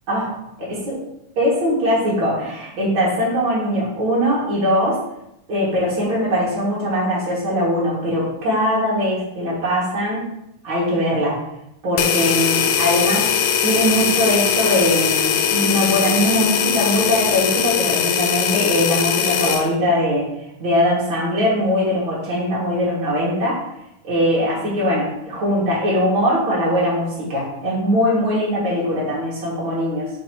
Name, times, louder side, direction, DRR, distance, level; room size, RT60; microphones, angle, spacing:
voice 1, 0.1-0.4 0.7-0.9 1.4-5.0 5.5-10.2 10.6-11.4 11.8-13.3 13.6-20.3 20.6-23.6 24.0-30.1, equal, 40° right, -6 dB, 2.8 m, -21 dB
sound 1, 12.0-19.7, left 8 dB, 80° left, 2.1 m, -20 dB
7.1 x 5.3 x 3.1 m, 0.83 s
omnidirectional pair, 3.8 m